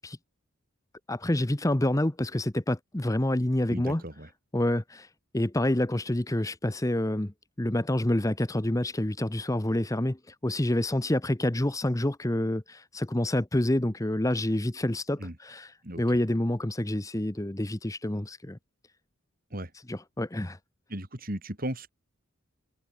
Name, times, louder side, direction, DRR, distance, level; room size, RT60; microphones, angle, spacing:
voice 1, 1.1-4.0 4.5-18.6 19.9-20.6, left 1 dB, 15° left, 0.8 m, -28 dB
voice 2, 3.7-4.3 15.2-15.3 15.8-16.0 19.5-19.7 20.9-21.9, right 1 dB, 40° right, 4.1 m, -36 dB
head